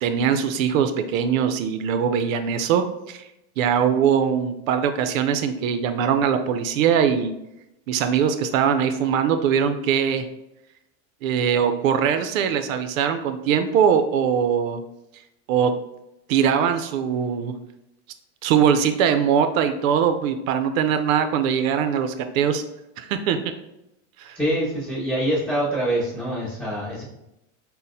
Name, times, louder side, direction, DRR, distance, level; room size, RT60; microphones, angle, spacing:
voice 1, 0.0-3.3 3.6-7.3 7.9-10.3 11.2-14.8 15.5-15.7 16.3-17.5 18.4-22.6 23.0-23.4 24.2-24.4, right 7 dB, 85° right, 9 dB, 0.5 m, -21 dB
voice 2, 24.3-27.0, right 1 dB, 5° left, -10 dB, 1.5 m, -25 dB
5.8 x 2.1 x 2.6 m, 0.88 s
supercardioid pair, 155°, 39 cm